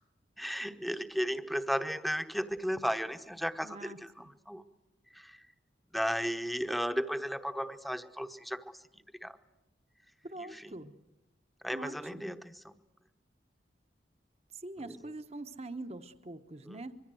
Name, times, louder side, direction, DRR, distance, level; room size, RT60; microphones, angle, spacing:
voice 1, 0.4-4.6 5.1-5.4 5.9-8.7 9.2-9.4 10.4-10.7 11.6-12.7 14.9-15.0 16.7-16.8, equal, ahead, 9 dB, 1.0 m, -35 dB
voice 2, 3.6-4.3 10.2-11.0 11.7-12.3 14.5-16.9, right 2 dB, 35° right, 8 dB, 1.1 m, -44 dB
25.0 x 23.5 x 7.7 m, 0.99 s
head